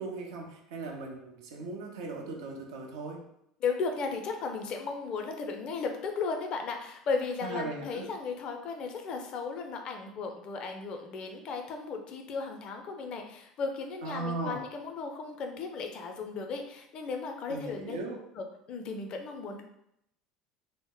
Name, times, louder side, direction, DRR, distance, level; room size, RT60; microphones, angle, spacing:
voice 1, 0.0-3.3 7.4-8.1 14.0-14.6 17.5-18.2, right 3 dB, 65° right, 0 dB, 0.5 m, -38 dB
voice 2, 3.6-18.0 18.3-19.6, left 4 dB, 45° left, 4 dB, 0.4 m, -35 dB
2.0 x 2.0 x 3.6 m, 0.76 s
figure-of-eight pair, 65°, 2 cm